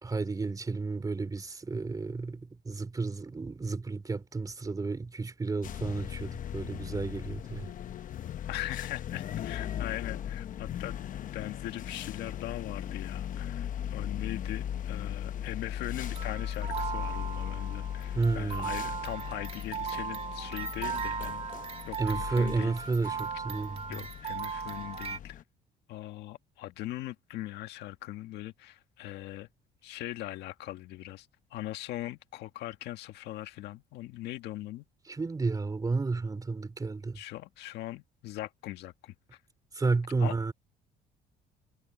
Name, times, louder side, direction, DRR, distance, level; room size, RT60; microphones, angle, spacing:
voice 1, 0.0-7.7 18.1-18.7 22.0-23.8 35.1-37.2 39.7-40.5, right 3 dB, 20° right, 2.9 m, -32 dB
sound 1, 5.6-25.4, left 10 dB, 50° left, 0.9 m, -38 dB
voice 2, 8.5-21.4 21.9-22.7 23.0-23.2 23.9-25.4 25.9-29.5 29.8-34.8 37.1-39.4 40.2-40.4, left 15 dB, 80° left, 1.6 m, -40 dB
sound 2, 16.0-25.2, right 7 dB, 35° right, 2.2 m, -37 dB
cardioid pair, 110°, 17 cm